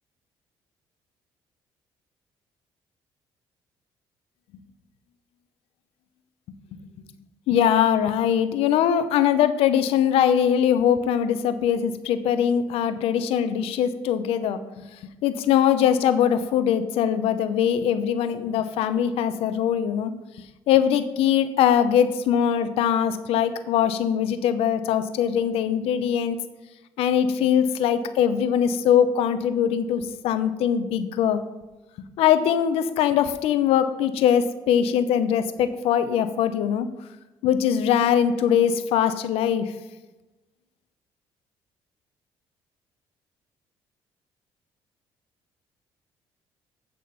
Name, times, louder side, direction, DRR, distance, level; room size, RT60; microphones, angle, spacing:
voice 1, 7.5-14.9 15.2-20.1 20.7-26.4 27.0-31.4 32.2-36.9 37.4-39.7, left 9 dB, 80° left, 11 dB, 0.7 m, -22 dB
8.8 x 3.8 x 6.6 m, 1.1 s
supercardioid pair, 70°, 10 cm